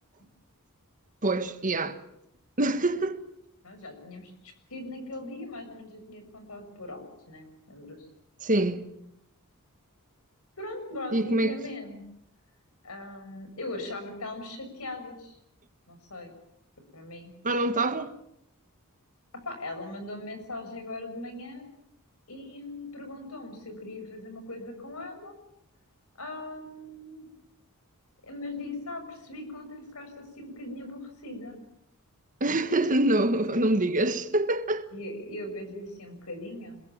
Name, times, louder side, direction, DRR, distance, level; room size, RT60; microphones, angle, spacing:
voice 1, 1.2-2.0 2.6-3.2 8.4-8.8 11.1-11.6 17.4-18.1 32.4-34.8, right 2 dB, 35° right, 1.6 m, -25 dB
voice 2, 3.6-8.0 10.6-12.0 12.8-15.4 15.9-16.3 16.9-17.4 19.3-21.7 22.3-25.3 26.2-27.3 28.2-31.6 34.9-36.8, left 2 dB, 70° left, 6.6 m, -40 dB
27.0 x 21.5 x 7.4 m
head